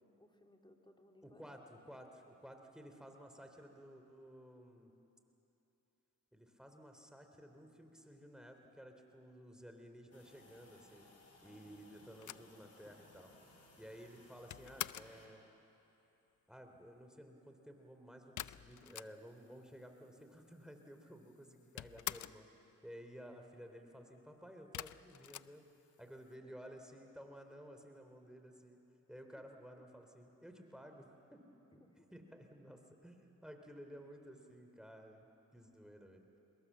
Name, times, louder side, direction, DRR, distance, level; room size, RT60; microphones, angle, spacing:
voice 1, 0.0-1.4 11.4-12.5 12.8-13.3 26.4-26.5 29.4-29.5 31.7-32.1, left 1 dB, 15° left, 2 dB, 3.1 m, -65 dB
voice 2, 1.2-4.9 6.3-11.1 11.4-13.3 13.8-15.4 16.5-22.5 22.8-25.7 26.0-28.8 29.1-31.4 32.1-35.3 35.5-36.2, equal, ahead, 4 dB, 3.4 m, -54 dB
sound 1, 10.1-15.3, left 2 dB, 45° left, 4.8 m, -63 dB
sound 2, 12.2-15.2 18.4-19.5 19.8-19.9 20.1-20.9 21.2-22.5 24.7-26.2, left 12 dB, 60° left, 0.6 m, -47 dB
24.0 x 21.5 x 7.4 m, 3.0 s
supercardioid pair, 55°, 34 cm